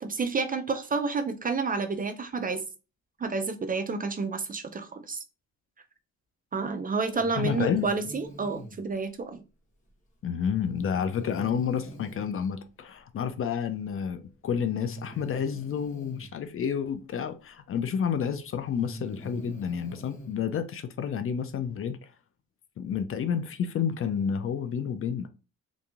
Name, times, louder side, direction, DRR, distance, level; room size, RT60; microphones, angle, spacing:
voice 1, 0.0-2.6 3.2-5.2 6.5-9.4, right 4 dB, 30° right, 0.4 m, -30 dB
Breathing, 7.2-8.8 10.7-12.4 13.7-13.8 14.7-16.3 17.8-17.9 18.6-20.4, equal, 25° left, 1.0 m, -44 dB
voice 2, 7.3-7.9 10.2-22.0 22.8-25.3, left 7 dB, 45° left, 0.4 m, -30 dB
2.9 x 2.5 x 2.4 m
cardioid pair, 90°, 31 cm